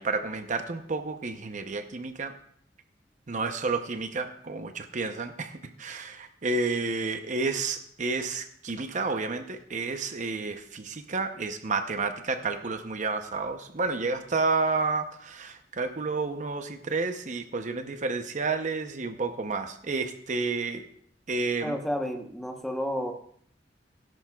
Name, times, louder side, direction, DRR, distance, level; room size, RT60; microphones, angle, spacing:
voice 1, 0.0-2.3 3.3-20.9 21.3-21.7, right 3 dB, 45° right, 8 dB, 0.7 m, -30 dB
voice 2, 21.6-23.1, equal, ahead, 4 dB, 1.0 m, -31 dB
18.0 x 10.5 x 2.3 m, 0.64 s
head